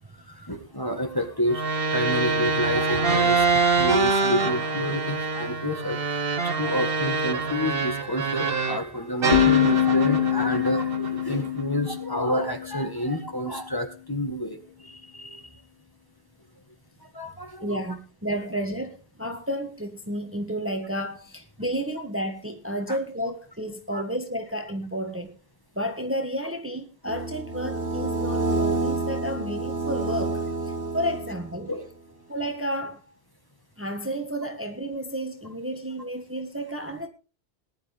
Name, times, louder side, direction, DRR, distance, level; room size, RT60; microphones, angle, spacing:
voice 1, 0.3-15.5 17.0-17.7 22.9-23.0 23.9-24.0 31.7-31.9, left 1 dB, 20° left, 1.6 m, -29 dB
sound 1, 1.5-8.9 9.2-11.6, right 4 dB, 55° right, 1.3 m, -25 dB
sound 2, 9.3-13.2, left 11 dB, 40° left, 1.0 m, -24 dB
voice 2, 17.6-25.4 25.7-31.7 32.3-33.0 33.8-37.1, equal, 10° right, 1.3 m, -31 dB
sound 3, 27.0-31.7, right 3 dB, 80° right, 2.4 m, -28 dB
20.0 x 11.0 x 3.5 m
omnidirectional pair, 1.1 m